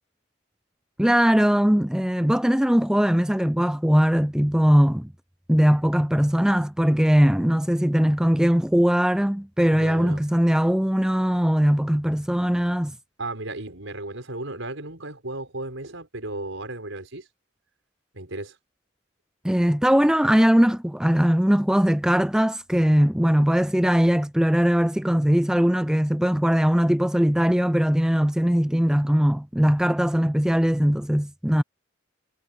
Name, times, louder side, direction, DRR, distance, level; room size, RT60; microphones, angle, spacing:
voice 1, 1.0-5.1 5.5-12.9 19.4-31.6, equal, 5° right, 0.4 m, -20 dB
voice 2, 9.7-10.2 13.2-17.3 18.1-18.6, right 2 dB, 85° right, 5.1 m, -35 dB
head